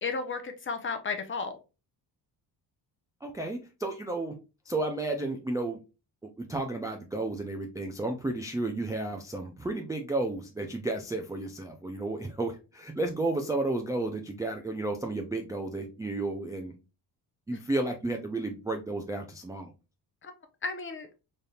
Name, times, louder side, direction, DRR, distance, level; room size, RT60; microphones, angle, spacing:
voice 1, 0.0-1.6 17.5-17.6 20.2-20.3 20.6-21.1, left 4 dB, 30° left, 7 dB, 0.6 m, -33 dB
voice 2, 3.2-4.3 4.7-5.8 6.4-16.7 17.5-19.7, right 2 dB, 10° right, 2 dB, 0.3 m, -32 dB
4.1 x 3.4 x 2.3 m, 0.29 s
cardioid pair, 150°, 41 cm